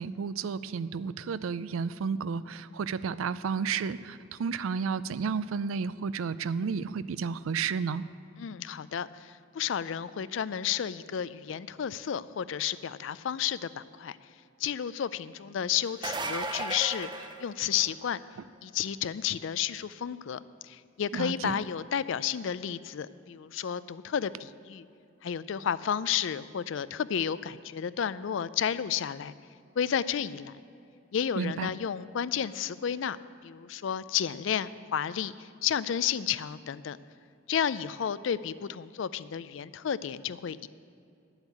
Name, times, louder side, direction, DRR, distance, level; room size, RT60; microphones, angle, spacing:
voice 1, 0.0-8.0 21.1-21.6 31.4-31.7, right 5 dB, 80° right, 16 dB, 0.4 m, -32 dB
voice 2, 8.4-14.2 14.6-18.2 18.6-24.9 25.2-29.3 29.8-30.5 31.1-33.2 33.4-37.0 37.5-40.7, left 8 dB, 65° left, 16 dB, 0.4 m, -32 dB
sound 1, 15.9-18.1 23.6-23.7 25.5-25.6, right 2 dB, 20° right, 0.6 m, -35 dB
9.9 x 8.0 x 8.5 m, 2.6 s
head